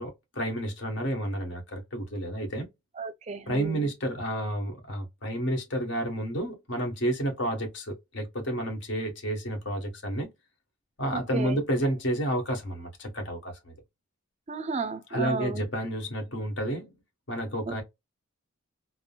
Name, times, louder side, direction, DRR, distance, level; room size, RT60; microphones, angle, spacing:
voice 1, 0.0-2.7 3.5-10.3 11.0-13.7 15.1-16.9 17.3-17.8, right 1 dB, 60° left, 1.3 m, -30 dB
voice 2, 3.0-3.9 11.1-11.6 14.5-15.7 17.7-17.8, right 4 dB, 30° right, 0.4 m, -33 dB
3.6 x 2.0 x 2.3 m
head